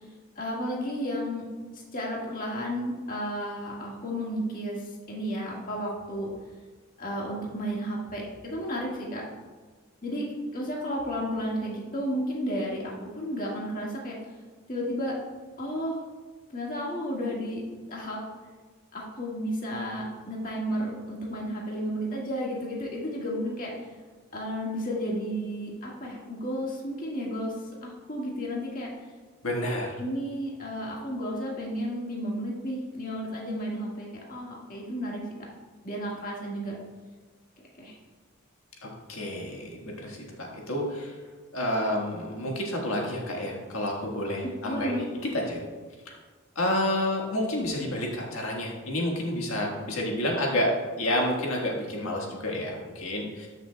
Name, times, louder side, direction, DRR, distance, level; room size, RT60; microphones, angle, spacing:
voice 1, 0.3-1.4 1.7-6.3 7.0-9.2 10.0-10.2 10.5-14.2 14.7-15.2 15.6-16.0 16.5-17.6 17.9-18.2 18.9-23.7 24.3-27.5 27.8-28.9 30.0-35.2 35.8-36.8 37.8-37.9 44.6-45.0, equal, 40° left, -3 dB, 1.7 m, -32 dB
voice 2, 29.4-29.9 38.8-41.1 41.5-44.9 45.3-45.6 46.5-50.7 51.0-53.5, left 1 dB, 85° left, -1 dB, 1.6 m, -29 dB
13.5 x 6.4 x 2.3 m, 1.4 s
head